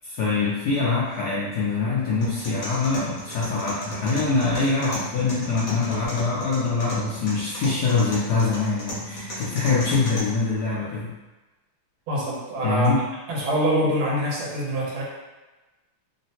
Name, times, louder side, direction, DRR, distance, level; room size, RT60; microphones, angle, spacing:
voice 1, 0.0-11.1 12.6-13.0, left 4 dB, 75° left, -7 dB, 0.9 m, -24 dB
sound 1, 2.2-10.2, equal, 50° left, 1.0 m, -35 dB
voice 2, 12.1-12.9 13.3-15.0, right 1 dB, 80° right, -5 dB, 1.6 m, -25 dB
3.7 x 2.1 x 2.7 m, 1.1 s
omnidirectional pair, 2.3 m